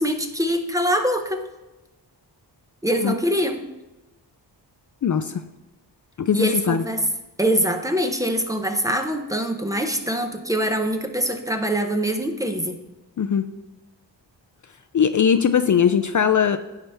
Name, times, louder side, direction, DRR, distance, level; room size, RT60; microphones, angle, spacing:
voice 1, 0.0-1.5 2.8-3.6 6.3-7.0 7.4-12.8, equal, 10° right, 5 dB, 0.6 m, -23 dB
voice 2, 5.0-5.4 6.2-6.8 13.2-13.5 14.9-16.6, left 7 dB, 45° left, 9 dB, 0.4 m, -20 dB
16.5 x 5.8 x 3.4 m, 1.1 s
wide cardioid pair, 170°, 43 cm